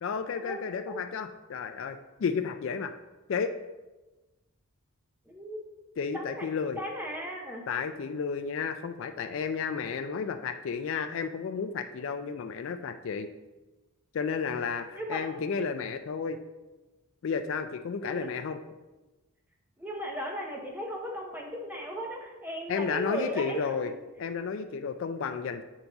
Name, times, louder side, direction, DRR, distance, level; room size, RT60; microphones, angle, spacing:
voice 1, 0.0-2.9 3.3-3.5 6.0-6.8 7.7-13.3 14.1-16.4 17.2-18.6 22.7-23.9 24.2-25.6, left 5 dB, 60° left, 9 dB, 0.3 m, -32 dB
voice 2, 5.3-5.6 6.1-6.5 6.8-7.6 14.9-15.3 18.0-18.3 19.8-23.9, equal, 10° right, 0 dB, 0.8 m, -36 dB
8.4 x 3.5 x 3.9 m, 1.1 s
head